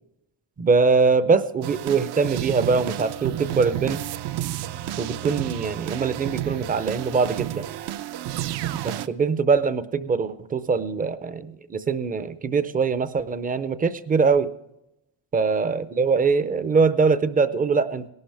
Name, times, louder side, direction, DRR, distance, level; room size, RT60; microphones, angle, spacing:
voice 1, 0.6-4.0 5.0-7.6 8.8-14.5 15.3-18.1, right 4 dB, 20° right, 13 dB, 0.5 m, -22 dB
sound 1, 1.6-9.1, right 13 dB, 60° right, 0.6 m, -31 dB
18.0 x 12.0 x 3.4 m, 0.85 s
cardioid pair, 175°, 44 cm